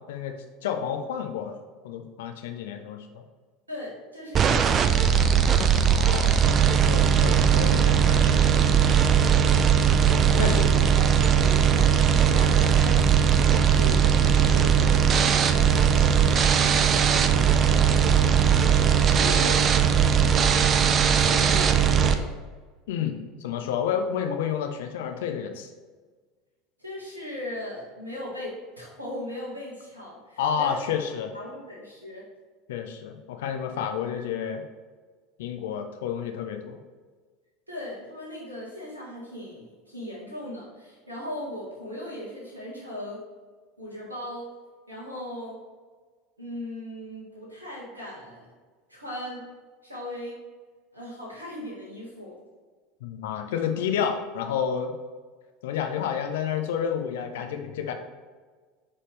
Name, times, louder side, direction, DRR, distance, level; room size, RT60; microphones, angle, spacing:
voice 1, 0.0-3.2 5.8-8.5 10.4-10.7 11.5-11.6 22.9-23.1 23.4-25.7 30.4-31.3 32.7-34.6 35.4-36.8 53.0-54.9 55.6-57.9, left 8 dB, 65° left, 5 dB, 0.8 m, -30 dB
voice 2, 3.7-5.2 10.3-13.0 13.4-19.7 21.1-22.3 26.8-30.8 31.3-32.3 37.7-43.2 43.8-44.5 44.9-45.6 46.4-48.5 48.9-49.5 49.8-50.4 50.9-52.3, left 1 dB, 85° right, -5 dB, 1.8 m, -38 dB
sound 1, 4.4-22.1, right 8 dB, 35° right, 0.6 m, -19 dB
9.9 x 4.3 x 3.4 m, 1.4 s
figure-of-eight pair, 75°, 0 cm